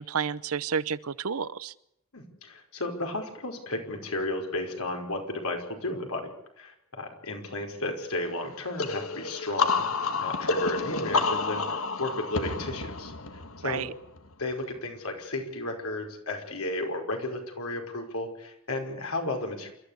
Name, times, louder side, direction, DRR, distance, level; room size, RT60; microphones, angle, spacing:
voice 1, 0.0-1.7 13.6-13.9, right 6 dB, 85° right, 18 dB, 0.8 m, -30 dB
voice 2, 2.1-13.1 13.6-13.8 14.4-19.7, left 2 dB, 90° left, 3 dB, 5.3 m, -33 dB
sound 1, 8.8-14.3, left 4 dB, 70° left, 1.7 m, -29 dB
28.0 x 14.0 x 8.4 m, 0.79 s
head